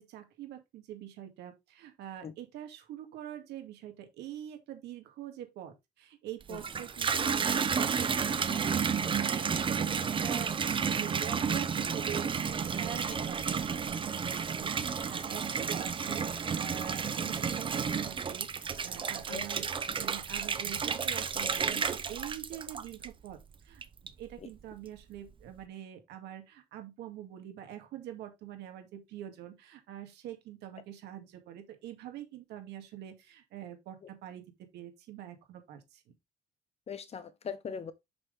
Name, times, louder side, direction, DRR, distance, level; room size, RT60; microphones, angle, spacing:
voice 1, 0.0-10.5 10.8-12.3 12.7-19.7 20.0-23.4 23.6-34.4 34.7-36.1, right 11 dB, 80° right, 2.2 m, -45 dB
Water tap faucet / Bathtub (filling or washing), 6.4-23.3 23.8-24.4, right 6 dB, 30° right, 0.8 m, -32 dB
voice 2, 36.9-37.9, left 6 dB, 40° left, 1.0 m, -40 dB
6.2 x 6.0 x 3.4 m
cardioid pair, 110°, 17 cm